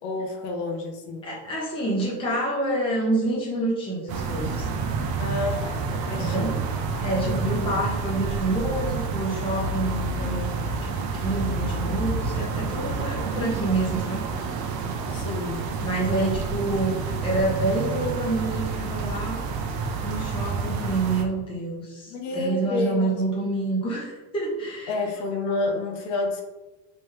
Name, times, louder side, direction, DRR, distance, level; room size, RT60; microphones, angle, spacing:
voice 1, 0.0-1.3 5.2-6.6 7.2-7.7 13.2-13.5 15.1-15.6 22.1-23.1 24.9-26.4, left 3 dB, 70° left, 2 dB, 1.0 m, -30 dB
voice 2, 1.2-4.7 6.2-6.6 7.0-10.5 10.8-14.6 15.8-19.4 20.0-25.1, right 2 dB, 10° left, -5 dB, 0.9 m, -28 dB
sound 1, 4.1-21.2, right 4 dB, 50° right, 0.7 m, -29 dB
3.4 x 3.1 x 3.2 m, 1.2 s
supercardioid pair, 125°, 46 cm